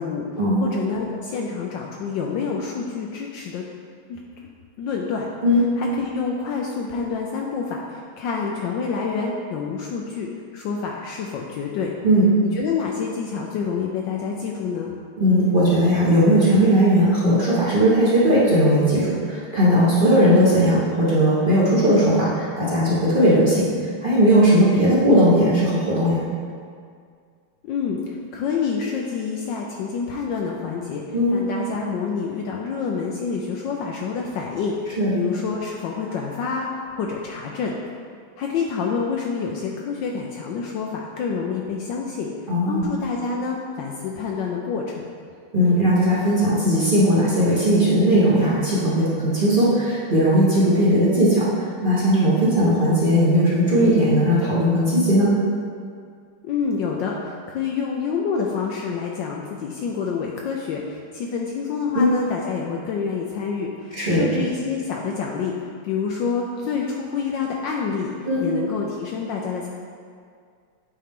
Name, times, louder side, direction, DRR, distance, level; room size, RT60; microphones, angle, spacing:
voice 1, 0.0-3.6 4.1-4.5 4.8-5.3 5.8-10.3 10.5-11.9 12.4-15.0 27.6-31.0 31.3-37.8 38.4-42.3 42.7-45.1 56.4-68.1 68.4-69.7, left 5 dB, 75° left, 0 dB, 1.1 m, -27 dB
voice 2, 15.2-23.7 24.0-26.2 31.1-31.4 35.0-35.1 42.5-42.8 45.5-55.3 61.9-62.1 63.9-64.2 68.3-68.5, equal, 35° right, -8 dB, 0.9 m, -18 dB
8.5 x 4.4 x 3.6 m, 2.1 s
omnidirectional pair, 2.4 m